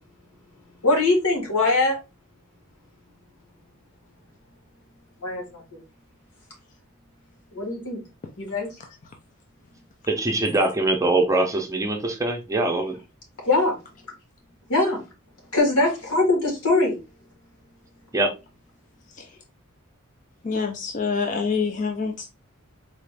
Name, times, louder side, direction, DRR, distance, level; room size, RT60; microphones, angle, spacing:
voice 1, 0.8-2.0 5.2-5.8 7.5-8.0 8.4-8.7 13.4-13.7 14.7-15.0 15.5-17.0, left 2 dB, 90° left, 1.9 m, -22 dB
voice 2, 10.1-13.0 18.1-18.3, right 2 dB, 15° right, 0.5 m, -23 dB
voice 3, 20.4-22.2, left 5 dB, 35° left, 0.4 m, -26 dB
4.1 x 2.5 x 3.3 m
head